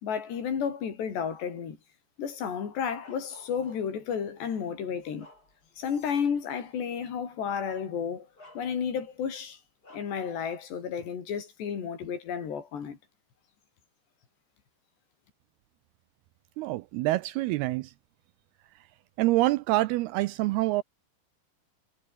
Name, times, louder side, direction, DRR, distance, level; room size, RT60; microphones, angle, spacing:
voice 1, 0.0-1.8 2.2-5.3 5.8-8.3 8.6-9.6 9.9-13.0, left 7 dB, 75° left, 6.1 m, -32 dB
Bark, 3.0-4.1 4.7-5.9 6.4-6.5 7.7-7.8 8.4-9.1 9.8-10.3, left 2 dB, 20° left, 8.3 m, -55 dB
voice 2, 16.6-17.9 19.2-20.8, right 18 dB, 80° right, 2.4 m, -26 dB
omnidirectional pair, 5.0 m